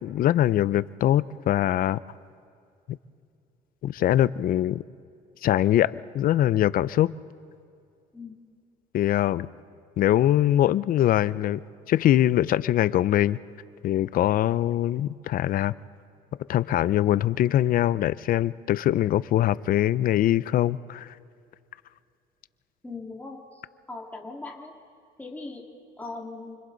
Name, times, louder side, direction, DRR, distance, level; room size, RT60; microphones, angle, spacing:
voice 1, 0.0-2.0 3.8-4.8 5.4-7.1 8.9-9.5 10.0-11.6 11.9-13.4 13.8-15.7 16.5-21.1, left 12 dB, 55° left, 0.5 m, -22 dB
voice 2, 22.8-23.6 23.9-24.7 25.2-25.7 26.0-26.6, left 3 dB, 10° left, 2.1 m, -39 dB
29.0 x 25.0 x 4.0 m
cardioid pair, 110°, 17 cm